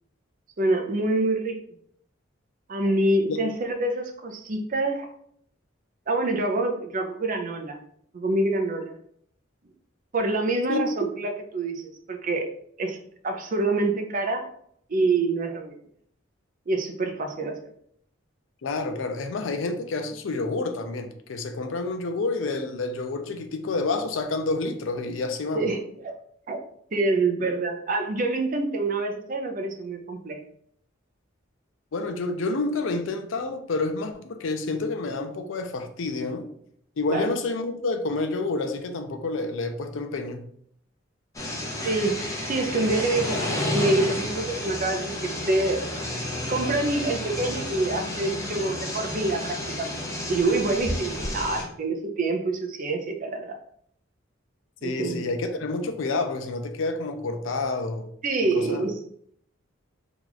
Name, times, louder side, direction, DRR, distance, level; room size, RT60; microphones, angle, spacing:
voice 1, 0.6-1.6 2.7-5.1 6.1-7.8 8.1-8.9 10.1-12.5 12.8-13.0 13.2-14.4 14.9-15.8 16.7-17.6 25.5-26.2 26.5-26.6 26.9-30.4 37.1-37.3 41.8-45.8 46.5-53.6 54.8-55.2 58.2-58.9, right 2 dB, 45° right, 0.5 m, -26 dB
voice 2, 18.6-25.7 31.9-36.5 37.0-40.5 54.8-58.1 58.5-58.9, left 3 dB, 75° left, 0.5 m, -29 dB
sound 1, 41.3-51.6, left 1 dB, 15° left, 0.7 m, -31 dB
2.9 x 2.4 x 3.9 m
head